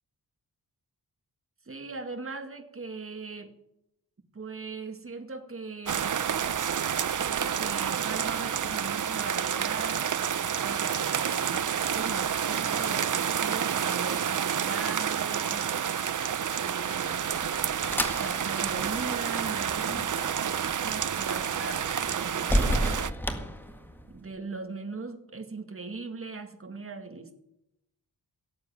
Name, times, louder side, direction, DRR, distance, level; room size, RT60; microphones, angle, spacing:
voice 1, 1.7-3.5 4.3-6.3 7.2-10.0 10.6-15.7 16.5-17.2 18.2-23.1 24.1-27.3, right 3 dB, 35° right, 5 dB, 2.2 m, -40 dB
sound 1, 5.9-23.1, right 8 dB, 50° right, 0.7 m, -29 dB
sound 2, 17.1-24.3, equal, 5° left, 1.8 m, -33 dB
17.5 x 8.0 x 9.1 m, 0.83 s
wide cardioid pair, 85°, 39 cm